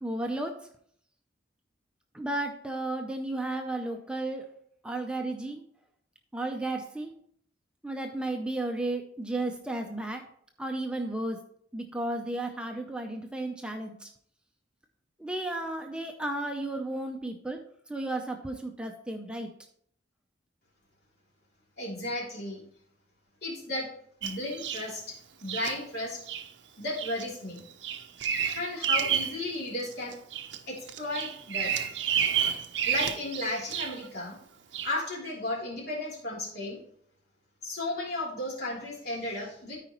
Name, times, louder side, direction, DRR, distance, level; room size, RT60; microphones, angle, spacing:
voice 1, 0.0-0.7 2.1-4.5 4.8-5.6 6.3-7.1 7.8-10.3 10.6-11.5 11.7-14.1 15.2-19.5, right 2 dB, 5° right, 3 dB, 0.6 m, -33 dB
voice 2, 21.8-22.6 23.4-23.9 24.2-26.2 26.8-27.6 28.4-30.2 30.7-31.7 32.8-34.4 34.8-36.8 37.6-39.8, left 1 dB, 55° left, -4 dB, 3.2 m, -34 dB
Bird vocalization bird call bird song, 24.2-24.9 25.5-25.7 26.3-26.5 27.0-27.3 27.6-29.4 29.8-30.6 30.9-34.0 34.7-34.9, right 8 dB, 70° right, 0.6 m, -30 dB
13.0 x 4.9 x 3.0 m, 0.63 s
head